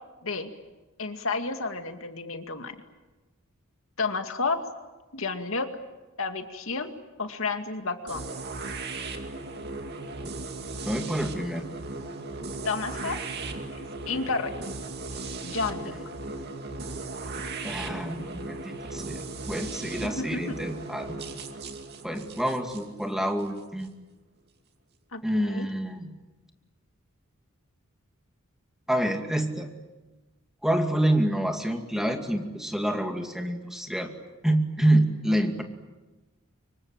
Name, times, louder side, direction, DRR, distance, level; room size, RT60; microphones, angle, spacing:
voice 1, 1.0-2.7 4.0-4.6 5.1-5.7 6.2-6.9 7.2-8.2 12.6-13.2 14.1-14.5 15.4-15.9 20.0-20.6 25.1-25.7, left 4 dB, 70° left, 6 dB, 2.3 m, -31 dB
sound 1, 8.1-23.9, right 3 dB, 50° right, 2.5 m, -37 dB
voice 2, 10.9-11.7 17.6-21.2 22.0-23.9 25.2-26.1 28.9-29.7 30.6-34.1 34.4-35.6, right 1 dB, ahead, 4 dB, 2.4 m, -27 dB
25.5 x 23.5 x 8.9 m, 1.1 s
head